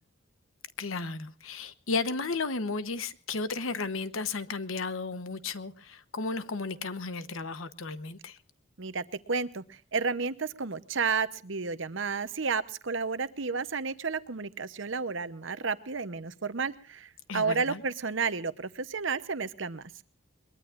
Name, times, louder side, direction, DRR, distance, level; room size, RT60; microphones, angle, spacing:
voice 1, 0.8-8.4 17.3-17.8, left 3 dB, 85° left, 1.0 m, -34 dB
voice 2, 8.8-19.8, right 5 dB, 70° right, 0.9 m, -32 dB
22.5 x 21.5 x 2.5 m
head